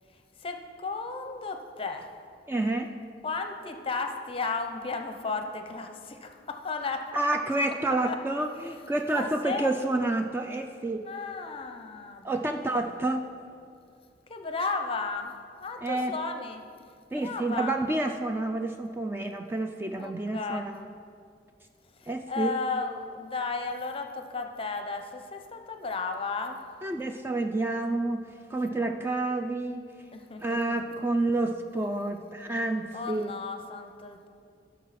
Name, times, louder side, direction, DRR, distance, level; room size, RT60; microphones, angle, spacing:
voice 1, 0.4-2.1 3.2-7.0 8.0-8.2 9.1-9.7 11.0-12.8 14.3-16.6 17.1-17.7 19.9-20.6 22.0-26.6 30.1-30.7 32.9-34.3, left 4 dB, 30° left, 6 dB, 0.7 m, -34 dB
voice 2, 2.5-2.9 7.1-11.1 12.2-13.2 15.8-16.1 17.1-20.9 22.1-22.6 26.8-28.2 28.5-29.8 30.4-33.3, right 2 dB, 10° right, 4 dB, 0.3 m, -29 dB
14.5 x 6.3 x 4.2 m, 2.3 s
head